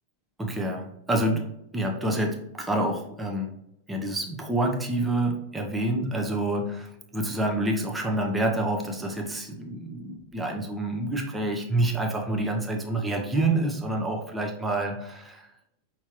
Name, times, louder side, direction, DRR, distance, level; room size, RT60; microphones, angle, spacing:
voice 1, 0.4-1.5 1.7-3.5 3.9-15.5, right 1 dB, 10° right, 0 dB, 0.8 m, -27 dB
5.6 x 2.9 x 3.0 m, 0.82 s
figure-of-eight pair, 90°, 0 cm